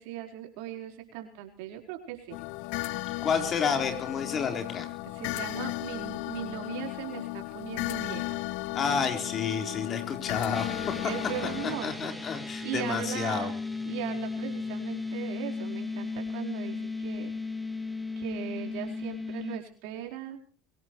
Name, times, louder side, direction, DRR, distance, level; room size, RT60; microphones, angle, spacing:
voice 1, 0.0-2.4 5.1-8.4 11.0-12.1 12.6-13.5 13.9-17.4 18.2-20.4, right 12 dB, 75° right, 3 dB, 4.5 m, -38 dB
sound 1, 2.3-11.8, left 19 dB, 70° left, 0.8 m, -35 dB
voice 2, 3.2-4.9 8.7-10.8 11.8-13.5, left 6 dB, 40° left, 6 dB, 4.2 m, -30 dB
sound 2, 10.5-19.6, left 3 dB, 5° left, 2.6 m, -35 dB
23.5 x 17.5 x 3.2 m, 0.42 s
hypercardioid pair, 90°, 0 cm